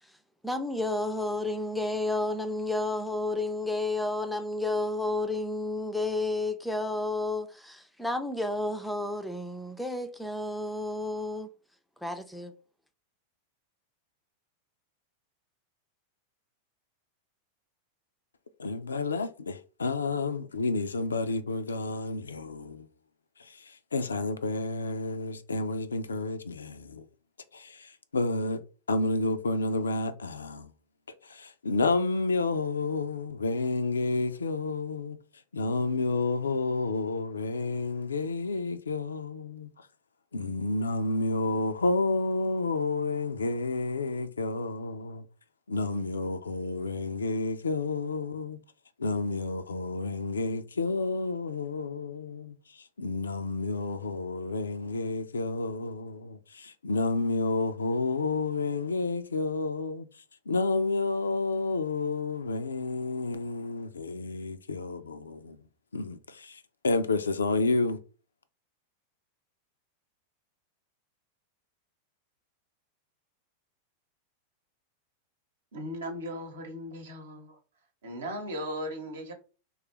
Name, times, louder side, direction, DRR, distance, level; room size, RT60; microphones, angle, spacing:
voice 1, 0.4-11.5 12.0-12.5, left 2 dB, ahead, 0.4 m, -31 dB
voice 2, 18.6-22.9 23.4-27.1 27.5-28.6 28.9-30.7 31.2-35.2 35.5-39.9 40.3-45.2 45.7-48.6 49.0-60.1 60.5-65.6 65.9-68.0, left 3 dB, 75° left, 0.3 m, -30 dB
voice 3, 75.7-77.6 78.0-79.3, equal, 65° right, 0.9 m, -37 dB
3.1 x 2.3 x 3.0 m
figure-of-eight pair, 90°, 0 cm